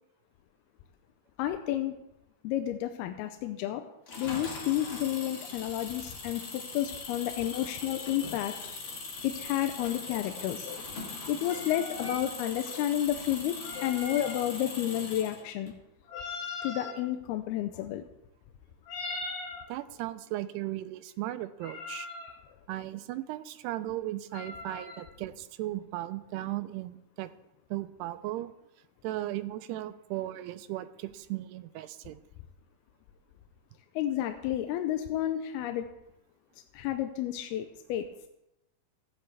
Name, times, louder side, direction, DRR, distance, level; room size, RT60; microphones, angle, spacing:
voice 1, 1.4-1.9 2.4-3.8 4.2-15.7 16.1-16.2 16.6-18.0 34.0-35.9 36.7-38.1, left 12 dB, 85° left, 7 dB, 2.5 m, -31 dB
Engine, 4.1-15.7, left 3 dB, 45° left, 1.6 m, -41 dB
sound 1, 11.5-12.2 13.5-14.4 16.1-17.0 18.8-19.7 21.6-22.3 24.3-25.0, left 3 dB, 65° left, 5.0 m, -40 dB
voice 2, 19.7-22.1 22.7-27.3 27.7-28.5 29.0-32.2, right 15 dB, 90° right, 12 dB, 2.7 m, -36 dB
15.0 x 10.0 x 3.3 m, 0.85 s
omnidirectional pair, 4.6 m